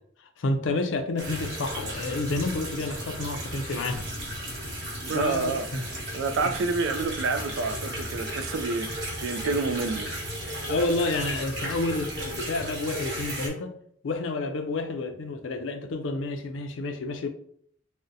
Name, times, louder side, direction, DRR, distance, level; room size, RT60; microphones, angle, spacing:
voice 1, 0.4-4.1 5.1-5.8 6.4-6.5 10.7-13.7 14.0-17.3, left 2 dB, 80° left, 0.4 m, -29 dB
sound 1, 1.2-13.5, equal, 60° right, 1.0 m, -35 dB
voice 2, 5.0-10.1, right 4 dB, 85° right, 0.3 m, -29 dB
2.6 x 2.1 x 3.8 m
head